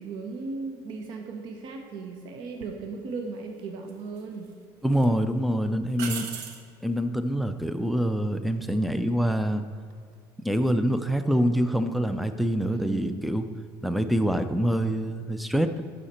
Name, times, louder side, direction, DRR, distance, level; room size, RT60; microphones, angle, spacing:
voice 1, 0.0-4.5 12.7-13.2, right 4 dB, 55° right, 3 dB, 0.9 m, -36 dB
sound 1, 2.6-2.8 3.9-4.5 4.9-5.1 5.9-6.7 9.8-10.1, right 6 dB, 80° right, 0.9 m, -37 dB
voice 2, 4.8-6.3 6.8-9.6 10.4-13.5 13.8-15.8, equal, ahead, 9 dB, 0.3 m, -25 dB
11.5 x 5.8 x 4.3 m, 2.2 s
cardioid pair, 160°, 9 cm